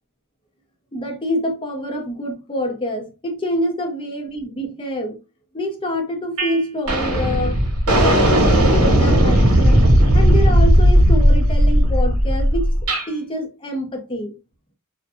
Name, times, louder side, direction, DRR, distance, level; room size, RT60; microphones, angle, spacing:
voice 1, 0.9-5.2 5.5-7.6 7.9-9.9 10.1-12.7 13.1-14.3, equal, 25° left, 0.5 m, -26 dB
sound 1, 6.4-6.6 6.9-13.1, equal, 85° right, 0.9 m, -15 dB
2.6 x 2.1 x 2.4 m
head